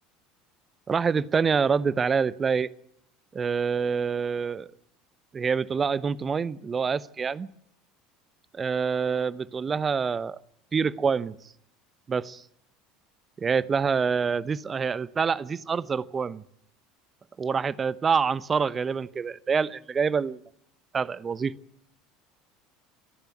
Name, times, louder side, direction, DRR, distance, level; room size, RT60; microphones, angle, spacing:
voice 1, 0.9-2.7 3.3-4.7 5.3-7.5 8.5-10.4 10.7-11.3 12.1-12.4 13.4-16.4 17.4-20.4 20.9-21.6, right 5 dB, 30° right, 0.9 m, -26 dB
27.0 x 10.5 x 9.3 m
hypercardioid pair, 75°, 0 cm